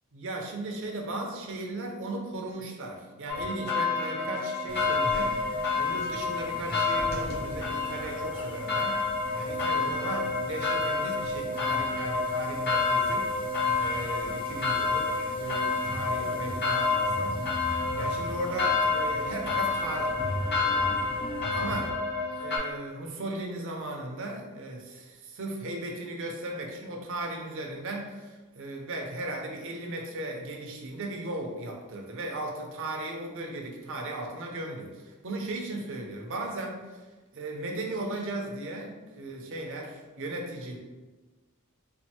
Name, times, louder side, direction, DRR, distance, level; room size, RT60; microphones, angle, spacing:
voice 1, 0.1-5.4 5.8-9.0 9.3-13.3 13.8-17.4 18.0-20.1 20.5-21.1 21.5-21.9 22.3-36.8 37.3-40.8, right 2 dB, 60° right, 1 dB, 0.7 m, -36 dB
sound 1, 3.3-22.6, left 4 dB, 50° left, 0.9 m, -29 dB
sound 2, 4.7-21.9, left 1 dB, 25° left, 0.5 m, -41 dB
4.3 x 2.5 x 2.9 m, 1.2 s
head